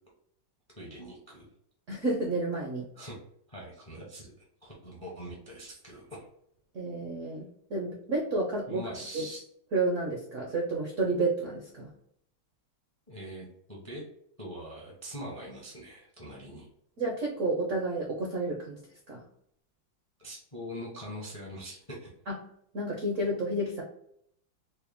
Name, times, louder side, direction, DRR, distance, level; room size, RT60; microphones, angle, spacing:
voice 1, 0.8-1.5 2.9-3.2 3.5-4.3 4.6-6.3 8.7-9.4 13.1-14.0 14.4-16.7 20.2-22.1, equal, 35° left, -3 dB, 0.5 m, -43 dB
voice 2, 1.9-2.9 6.7-8.8 9.1-9.3 9.7-11.9 17.0-18.8 19.1-19.2 22.3-22.4 22.7-23.8, right 2 dB, 65° right, -1 dB, 0.7 m, -30 dB
4.2 x 2.1 x 3.4 m, 0.70 s
omnidirectional pair, 2.1 m